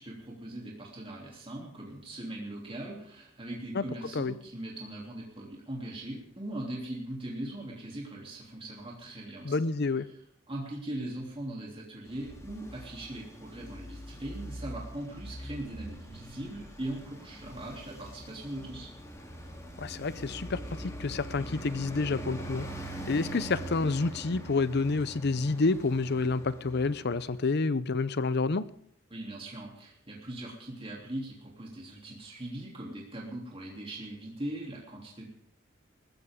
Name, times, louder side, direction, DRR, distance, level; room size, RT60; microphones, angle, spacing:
voice 1, 0.0-9.5 10.5-18.9 29.1-35.3, right 1 dB, 30° right, 3.1 m, -40 dB
voice 2, 9.4-10.1 19.8-22.7 23.1-28.7, left 3 dB, 55° left, 0.7 m, -29 dB
Traffic noise roadway noise, 12.1-27.5, right 1 dB, 15° left, 3.2 m, -43 dB
20.5 x 15.0 x 3.7 m
head